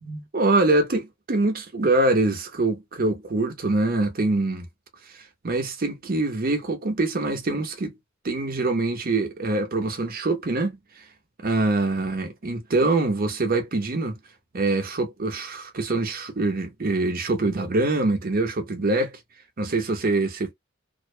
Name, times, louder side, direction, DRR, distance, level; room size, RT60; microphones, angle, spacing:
voice 1, 0.0-4.7 5.4-7.9 8.2-10.8 11.4-14.2 14.5-19.2 19.6-20.5, right 2 dB, 45° right, 0.7 m, -24 dB
2.5 x 2.1 x 2.4 m
head